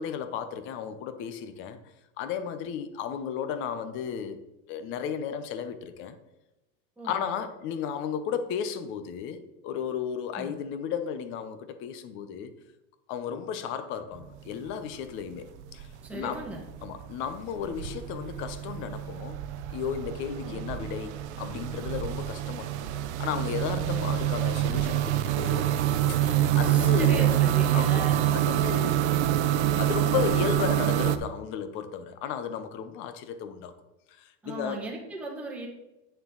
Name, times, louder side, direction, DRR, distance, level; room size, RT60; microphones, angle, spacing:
voice 1, 0.0-1.8 2.2-4.4 4.7-6.2 7.0-12.5 13.1-16.4 16.8-19.4 19.7-22.9 23.2-25.8 26.1-27.3 27.7-28.0 28.3-33.7 34.1-34.8, left 8 dB, 35° left, 0.7 m, -34 dB
sound 1, 14.2-14.7 14.9-31.2, right 12 dB, 65° right, 0.7 m, -27 dB
voice 2, 16.0-16.6 20.4-20.6 23.7-24.1 26.6-28.2 34.4-35.7, right 2 dB, 5° right, 1.3 m, -38 dB
9.1 x 6.5 x 3.9 m
supercardioid pair, 165°, 37 cm